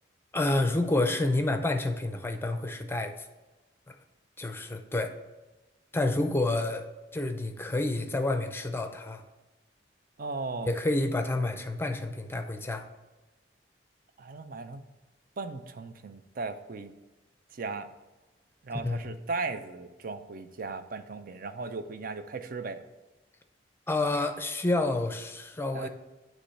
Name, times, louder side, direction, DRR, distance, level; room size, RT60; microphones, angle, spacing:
voice 1, 0.3-3.1 3.9-4.0 4.4-5.1 5.9-9.2 10.7-12.9 18.7-19.2 23.9-25.9, left 2 dB, 15° left, 7 dB, 0.5 m, -29 dB
voice 2, 10.2-10.7 14.2-14.8 15.4-16.9 17.5-17.9 18.6-22.8 25.7-25.9, right 3 dB, 50° right, 9 dB, 0.5 m, -37 dB
8.3 x 3.1 x 5.6 m, 1.1 s
head